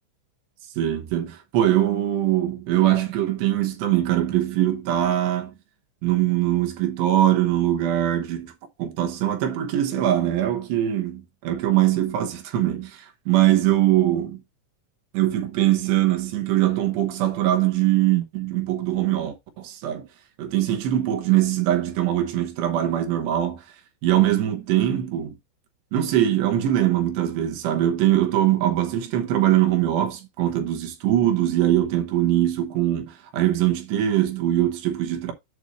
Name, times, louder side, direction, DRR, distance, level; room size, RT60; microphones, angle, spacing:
voice 1, 0.8-5.5 6.0-8.5 8.8-14.4 15.1-20.1 20.4-23.6 24.0-25.3 25.9-35.3, right 12 dB, 70° right, 2.8 m, -22 dB
8.4 x 2.8 x 6.1 m
omnidirectional pair, 5.8 m